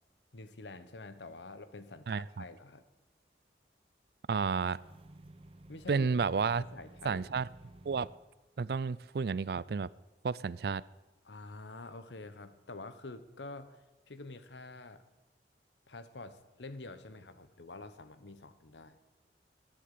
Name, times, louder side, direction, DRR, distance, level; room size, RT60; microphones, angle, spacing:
voice 1, 0.3-2.8 5.7-6.1 6.5-7.2 11.2-15.0 15.9-19.0, left 2 dB, 90° left, 11 dB, 1.1 m, -47 dB
voice 2, 2.1-2.4 4.3-4.8 5.9-6.6 7.0-7.5 7.8-8.1 8.6-9.9 10.2-10.8, right 5 dB, 60° right, 20 dB, 0.4 m, -31 dB
sound 1, 4.5-8.2, right 1 dB, 30° right, 0.7 m, -55 dB
13.5 x 10.5 x 8.4 m, 1.1 s
head